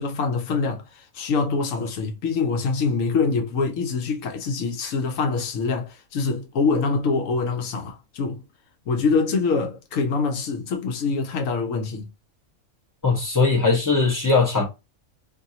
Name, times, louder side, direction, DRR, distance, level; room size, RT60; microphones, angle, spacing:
voice 1, 0.0-8.4 8.9-12.1, left 4 dB, 75° left, 1.1 m, -25 dB
voice 2, 13.0-14.7, left 4 dB, 15° left, 0.9 m, -20 dB
2.6 x 2.6 x 2.7 m
omnidirectional pair, 1.4 m